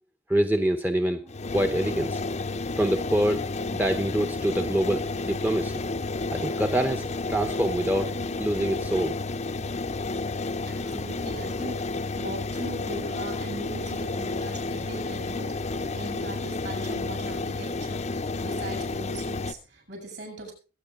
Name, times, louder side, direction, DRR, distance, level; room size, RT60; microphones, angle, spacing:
voice 1, 0.3-2.2 2.7-5.9 6.3-9.2 10.8-10.9, right 1 dB, 10° right, 5 dB, 0.8 m, -26 dB
sound 1, 1.3-19.5, left 3 dB, 35° left, 0.6 m, -31 dB
voice 2, 10.7-20.5, right 1 dB, 60° right, 3 dB, 7.0 m, -40 dB
22.5 x 9.1 x 3.6 m, 0.34 s
head